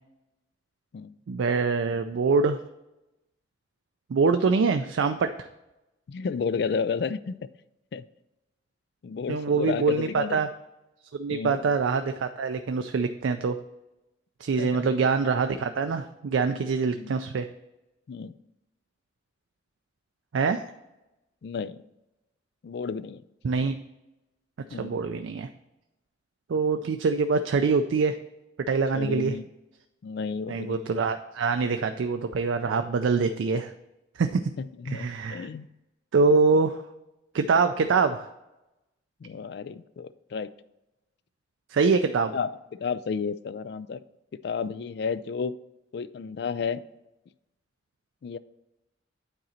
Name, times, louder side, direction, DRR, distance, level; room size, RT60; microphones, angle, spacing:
voice 1, 1.3-2.6 4.1-5.5 9.3-10.5 11.1-13.6 14.4-17.5 20.3-20.6 23.4-23.8 24.7-25.5 26.5-28.2 28.7-29.4 30.5-33.7 34.2-34.4 34.9-35.5 36.1-36.8 37.3-38.3 41.7-42.3, right 4 dB, 85° right, 8 dB, 0.4 m, -24 dB
voice 2, 6.1-7.4 7.9-8.0 9.0-10.5 11.3-11.6 14.6-14.9 16.9-17.1 18.1-18.3 21.4-21.8 22.6-23.2 24.7-24.9 28.9-29.4 30.0-30.9 34.6-35.7 39.2-40.5 42.3-44.0 44.4-45.5 45.9-46.8 48.2-48.4, left 5 dB, 55° left, 15 dB, 0.3 m, -32 dB
9.1 x 3.9 x 4.3 m, 0.94 s
head